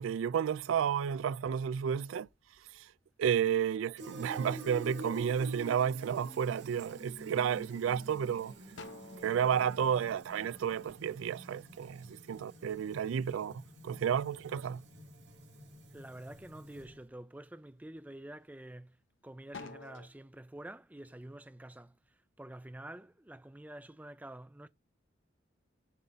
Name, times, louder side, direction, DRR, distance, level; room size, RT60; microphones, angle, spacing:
voice 1, 0.0-2.3 2.7-2.9 3.2-8.5 9.2-14.8, right 8 dB, 90° right, 0.3 m, -32 dB
sound 1, 1.8-3.7 4.2-4.9 5.4-6.0 6.4-7.3 7.8-7.9 8.2-11.1 11.5-13.8 14.1-15.2 15.6-16.2 16.7-16.9 17.4-19.1 19.4-20.1, left 3 dB, 75° left, 1.0 m, -52 dB
Fill (with liquid), 4.0-17.1, right 2 dB, 60° right, 1.8 m, -49 dB
voice 2, 15.9-19.0 19.2-21.9 22.4-24.7, right 1 dB, 10° right, 0.4 m, -48 dB
7.4 x 4.0 x 4.0 m
head